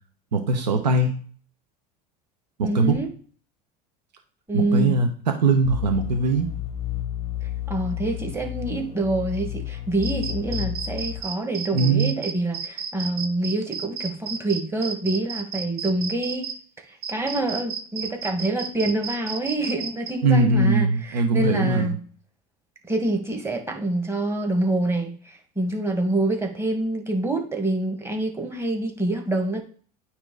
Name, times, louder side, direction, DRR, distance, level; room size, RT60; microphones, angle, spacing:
voice 1, 0.3-1.1 2.6-3.0 4.5-6.5 11.7-12.1 20.2-21.9, right 3 dB, 85° right, 5 dB, 1.1 m, -21 dB
voice 2, 2.6-3.1 4.5-5.0 7.7-16.5 17.1-22.0 22.9-29.6, right 2 dB, 10° right, 3 dB, 1.7 m, -26 dB
sound 1, 5.6-11.2, left 13 dB, 30° left, 0.7 m, -31 dB
sound 2, 10.0-16.5 17.0-20.1, right 6 dB, 50° right, 1.0 m, -32 dB
9.0 x 3.1 x 3.9 m, 0.43 s
hypercardioid pair, 85°, 21 cm